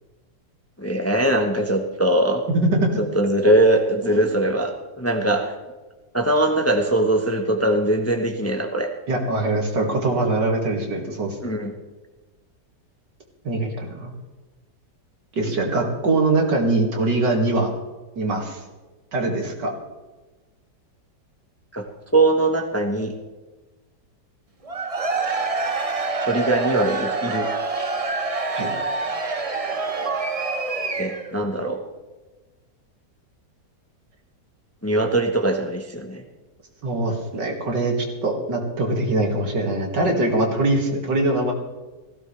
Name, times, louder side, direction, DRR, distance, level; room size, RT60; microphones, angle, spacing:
voice 1, 0.8-2.4 3.1-5.5 6.1-8.9 11.4-11.7 21.7-21.8 22.1-23.1 26.3-27.5 31.0-31.8 34.8-36.2, right 1 dB, 10° left, 4 dB, 0.9 m, -21 dB
voice 2, 2.5-2.9 4.0-4.3 9.1-11.4 13.4-14.1 15.4-17.7 18.2-18.6 19.1-19.7 28.5-28.7 36.8-41.5, right 2 dB, 85° right, 1 dB, 2.9 m, -22 dB
Cheering / Crowd, 24.6-31.4, right 3 dB, 25° right, 0.8 m, -26 dB
17.0 x 16.0 x 3.4 m, 1.2 s
omnidirectional pair, 1.8 m